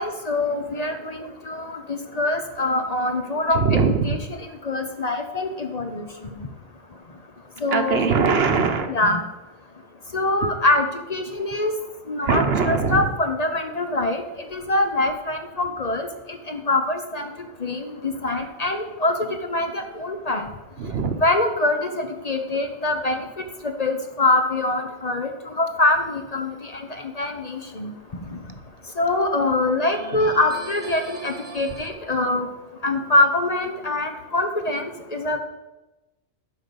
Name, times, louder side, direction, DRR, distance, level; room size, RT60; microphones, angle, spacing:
voice 1, 0.0-4.2 4.6-6.0 7.6-8.1 8.9-9.2 10.1-11.7 12.1-14.2 14.5-16.1 16.5-17.3 17.6-20.5 21.2-23.2 23.8-26.9 27.2-27.9 28.3-28.4 29.0-32.5 32.8-34.8 35.1-35.4, left 2 dB, 40° left, 5 dB, 0.9 m, -24 dB
voice 2, 3.5-4.2 7.7-9.0 12.2-13.1 20.8-21.2 30.1-30.3, right 5 dB, 65° right, 7 dB, 1.1 m, -22 dB
sound 1, 25.9-26.5 29.9-31.9, right 2 dB, 45° right, 1.3 m, -40 dB
10.0 x 5.0 x 6.9 m, 1.0 s
omnidirectional pair, 1.1 m